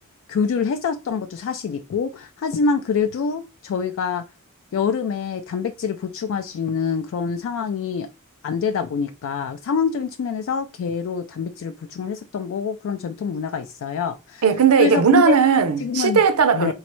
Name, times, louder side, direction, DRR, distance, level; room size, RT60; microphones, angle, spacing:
voice 1, 0.3-4.2 4.7-8.1 8.4-14.4 14.8-15.4 15.8-16.2 16.5-16.7, left 6 dB, 60° left, 0.3 m, -25 dB
voice 2, 14.4-16.7, right 6 dB, 75° right, 0.6 m, -17 dB
4.0 x 3.1 x 3.0 m
head